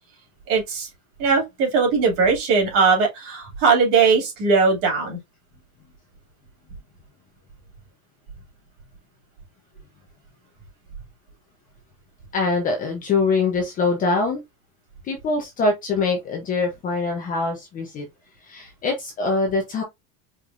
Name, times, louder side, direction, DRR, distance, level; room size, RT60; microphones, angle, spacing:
voice 1, 0.5-0.9 1.2-5.2, right 5 dB, 40° right, 2.8 m, -19 dB
voice 2, 12.3-14.4 15.0-18.1 18.5-19.8, left 3 dB, 20° left, 0.8 m, -23 dB
5.0 x 3.4 x 2.6 m
supercardioid pair, 175°, 44 cm